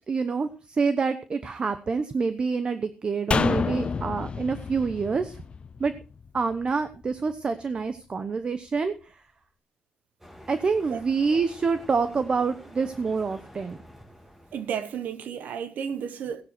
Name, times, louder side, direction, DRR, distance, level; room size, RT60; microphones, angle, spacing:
voice 1, 0.1-0.5 0.8-5.3 5.8-5.9 6.3-8.9 10.5-13.8, right 5 dB, 35° right, 0.9 m, -26 dB
sound 1, 3.3-6.6 6.9-7.0, left 5 dB, 40° left, 0.7 m, -29 dB
sound 2, 10.2-15.1, equal, 10° right, 2.5 m, -49 dB
voice 2, 14.5-16.4, right 7 dB, 85° right, 1.3 m, -32 dB
15.5 x 10.5 x 4.4 m
wide cardioid pair, 140°, 3 cm